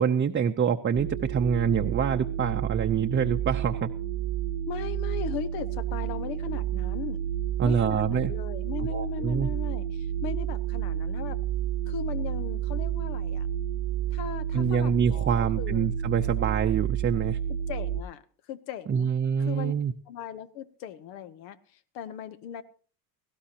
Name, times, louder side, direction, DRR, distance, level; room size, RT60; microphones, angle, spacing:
voice 1, 0.0-3.9 7.6-8.3 8.9-9.5 14.5-17.4 18.9-19.9, right 7 dB, 25° right, 4 dB, 0.6 m, -26 dB
sound 1, 0.9-18.0, right 10 dB, 85° right, 0.9 m, -30 dB
voice 2, 4.7-7.2 7.6-11.4 11.9-13.5 14.1-16.0 17.5-18.2 18.5-19.1 19.4-19.7 20.1-22.6, left 9 dB, 85° left, 12 dB, 1.0 m, -38 dB
18.0 x 16.0 x 2.9 m, 0.42 s
supercardioid pair, 90°, 49 cm